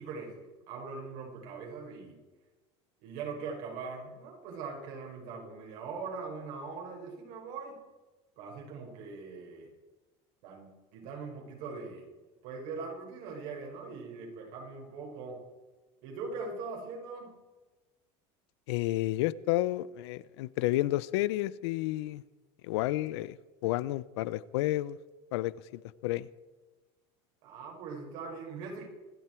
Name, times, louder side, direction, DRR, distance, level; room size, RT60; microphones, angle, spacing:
voice 1, 0.0-2.2 3.0-7.8 8.4-9.7 10.4-12.1 12.4-15.4 16.0-17.4 27.4-28.9, right 4 dB, 60° right, 5.4 m, -41 dB
voice 2, 18.7-22.2 22.6-23.4 23.6-25.0 25.3-26.3, left 16 dB, 85° left, 0.7 m, -31 dB
26.0 x 11.0 x 4.6 m
cardioid pair, 165°, 14 cm